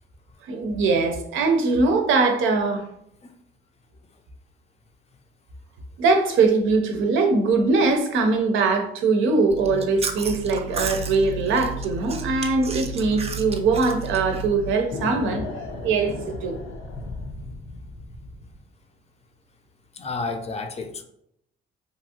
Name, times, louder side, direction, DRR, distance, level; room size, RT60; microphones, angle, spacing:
voice 1, 0.5-2.9 6.0-15.5 15.8-16.6, right 4 dB, 85° right, 4 dB, 0.6 m, -21 dB
Chewing mastication, 9.5-14.8, right 3 dB, 30° right, 0.4 m, -32 dB
sound 1, 14.9-18.6, left 3 dB, 80° left, 0.6 m, -35 dB
voice 2, 19.9-21.0, left 3 dB, 30° left, 6 dB, 0.4 m, -31 dB
2.8 x 2.5 x 2.7 m, 0.73 s
cardioid pair, 90°, 20 cm